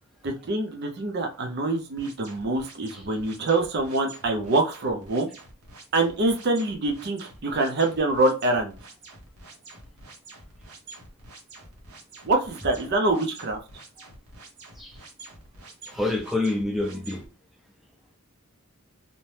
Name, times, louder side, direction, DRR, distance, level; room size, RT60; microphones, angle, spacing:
voice 1, 0.2-5.3 5.9-8.7 12.3-13.6, right 2 dB, 50° right, 0.5 m, -25 dB
sound 1, 2.0-17.3, right 2 dB, 90° right, 0.9 m, -47 dB
voice 2, 15.9-17.2, left 2 dB, ahead, 0.5 m, -27 dB
2.7 x 2.1 x 3.2 m
head